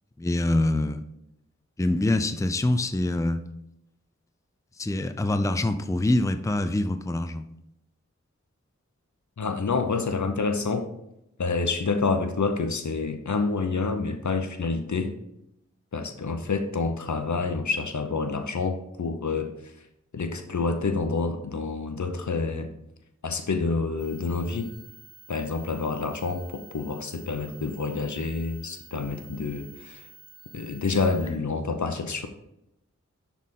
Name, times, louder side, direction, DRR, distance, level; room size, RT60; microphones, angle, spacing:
voice 1, 0.2-1.0 1.8-3.4 4.8-7.5, left 2 dB, 10° left, 9 dB, 0.4 m, -25 dB
voice 2, 9.4-10.9 11.4-15.1 15.9-19.7 20.1-22.7 23.2-24.7 25.3-30.1 30.5-32.3, left 4 dB, 80° left, 6 dB, 0.8 m, -28 dB
sound 1, 24.0-31.3, right 4 dB, 40° left, 2.9 m, -50 dB
10.5 x 4.1 x 3.7 m, 0.82 s
wide cardioid pair, 60°, 29 cm